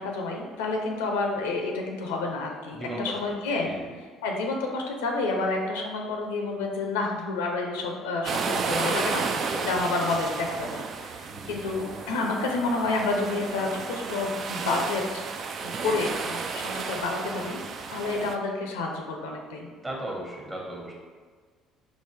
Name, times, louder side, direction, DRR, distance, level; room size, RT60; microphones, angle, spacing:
voice 1, 0.0-3.7 4.2-15.3 15.6-17.6 17.9-19.7, left 3 dB, 80° left, 1 dB, 0.5 m, -29 dB
voice 2, 2.7-3.2 3.6-3.9 9.4-10.1 11.3-11.6 15.7-16.1 19.8-20.9, right 1 dB, 25° right, -2 dB, 1.2 m, -37 dB
sound 1, 8.2-18.4, right 5 dB, 50° right, 0.3 m, -32 dB
4.6 x 2.6 x 3.3 m, 1.5 s
hypercardioid pair, 55°, 0 cm